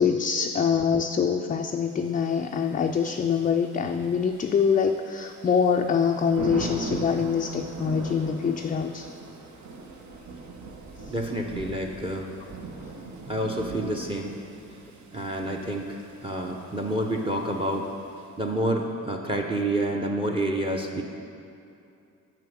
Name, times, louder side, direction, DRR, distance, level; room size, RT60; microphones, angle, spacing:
voice 1, 0.0-9.1, left 6 dB, 25° left, 4 dB, 0.3 m, -24 dB
Thunder / Rain, 2.0-18.6, right 3 dB, 60° right, 1.1 m, -41 dB
voice 2, 11.1-12.3 13.3-14.3 15.1-17.9 18.4-21.0, right 1 dB, 15° right, 2 dB, 0.8 m, -28 dB
7.5 x 5.1 x 7.3 m, 2.6 s
cardioid pair, 75°, 32 cm